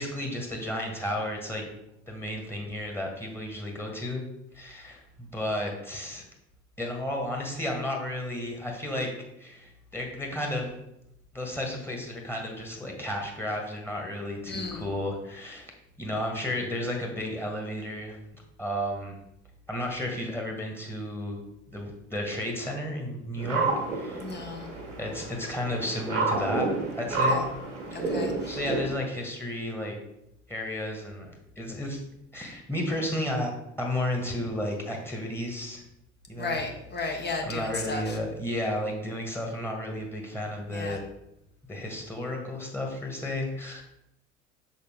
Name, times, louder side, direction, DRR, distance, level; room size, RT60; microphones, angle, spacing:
voice 1, 0.0-1.6 2.1-4.2 4.5-6.2 6.8-9.1 9.4-10.7 11.3-15.7 16.0-18.2 18.6-19.2 19.7-21.4 21.7-23.7 23.9-24.2 25.0-26.7 26.9-27.4 27.9-30.0 30.5-32.0 32.3-33.5 33.8-35.8 36.3-36.6 37.0-41.0 41.7-43.8, left 1 dB, 5° left, 0 dB, 1.5 m, -33 dB
voice 2, 14.5-14.8 24.2-24.7 27.3-27.4 27.9-28.6 36.4-38.2 40.7-41.0, left 3 dB, 30° left, 2 dB, 1.0 m, -34 dB
sound 1, 23.4-29.0, right 3 dB, 80° right, 1.5 m, -30 dB
6.4 x 4.1 x 3.7 m, 0.82 s
figure-of-eight pair, 60°, 36 cm